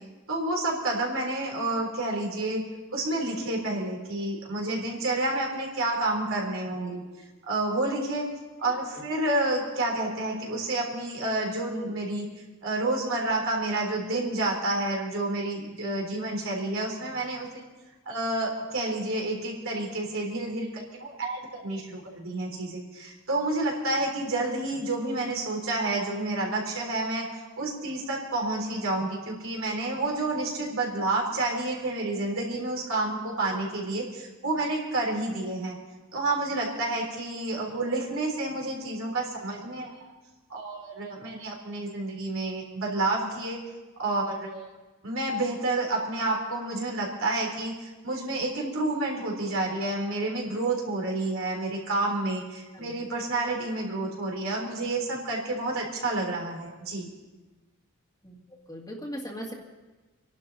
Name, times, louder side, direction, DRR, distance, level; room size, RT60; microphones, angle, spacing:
voice 1, 0.3-2.6 2.9-7.0 7.5-8.3 8.6-12.3 12.6-17.5 18.1-27.3 27.6-35.8 36.1-39.9 40.5-43.6 44.0-44.7 45.0-47.7 48.0-57.1, right 2 dB, 65° right, -1 dB, 3.7 m, -29 dB
voice 2, 58.7-59.5, equal, 15° left, -1 dB, 2.3 m, -38 dB
27.0 x 11.5 x 4.2 m, 1.2 s
head